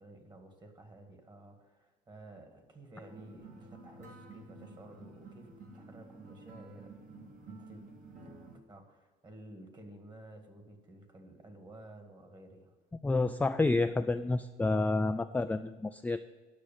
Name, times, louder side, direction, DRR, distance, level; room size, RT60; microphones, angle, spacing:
voice 1, 0.0-7.8 8.2-8.3 8.7-12.7, right 1 dB, 25° right, 5 dB, 1.9 m, -53 dB
sound 1, 3.0-8.6, right 3 dB, 50° right, 1.9 m, -51 dB
voice 2, 13.0-16.3, left 3 dB, 10° left, 8 dB, 0.3 m, -29 dB
10.0 x 6.4 x 7.2 m, 1.3 s
cardioid pair, 110°, 17 cm